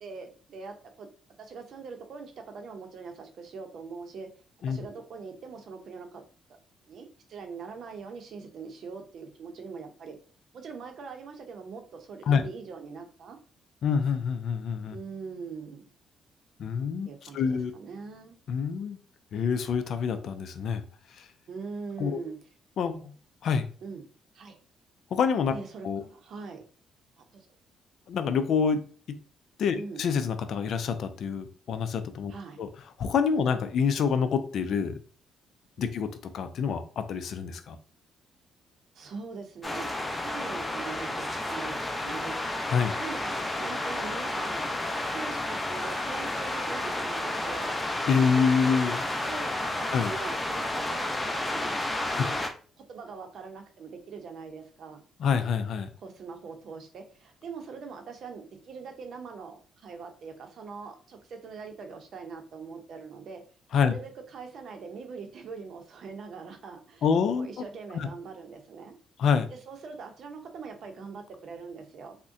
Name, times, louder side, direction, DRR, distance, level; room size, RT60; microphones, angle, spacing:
voice 1, 0.0-1.1 1.4-4.3 4.7-6.2 6.8-10.2 10.5-13.4 14.9-15.9 17.1-18.4 21.5-22.4 23.8-24.1 24.3-24.6 25.5-26.6 27.3-27.5 29.7-30.0 32.3-32.6 35.8-35.9 38.9-39.9 40.1-42.4 42.9-44.6 45.1-47.7 49.3-51.7 52.0-52.4 52.9-55.0 56.0-63.4 63.8-67.0 67.4-69.0 69.5-72.2, right 5 dB, 65° right, 4 dB, 0.6 m, -42 dB
voice 2, 13.8-15.0 16.6-17.1 17.3-17.7 18.5-19.0 19.3-20.8 21.1-21.3 22.0-22.2 22.8-23.1 23.4-23.7 25.1-25.5 25.8-26.0 28.1-28.8 29.6-32.3 32.6-32.7 33.0-35.0 35.8-36.1 36.3-37.8 42.7-42.9 48.1-49.0 49.9-50.1 52.2-52.3 55.2-55.9 63.7-63.9 67.0-67.5 67.9-68.1 69.2-69.5, left 6 dB, 65° left, 9 dB, 0.4 m, -26 dB
sound 1, 39.6-52.5, left 1 dB, 15° left, 0.7 m, -31 dB
3.5 x 2.1 x 2.6 m, 0.41 s
cardioid pair, 90°, 0 cm